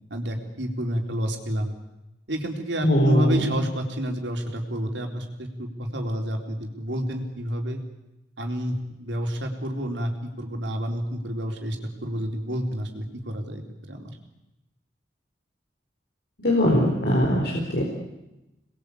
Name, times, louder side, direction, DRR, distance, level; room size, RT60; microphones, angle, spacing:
voice 1, 0.1-1.7 2.3-7.8 8.4-14.2, equal, 80° right, 2 dB, 3.9 m, -29 dB
voice 2, 2.8-3.6 16.4-17.8, equal, 60° left, -1 dB, 4.3 m, -21 dB
27.0 x 21.0 x 8.5 m, 0.96 s
head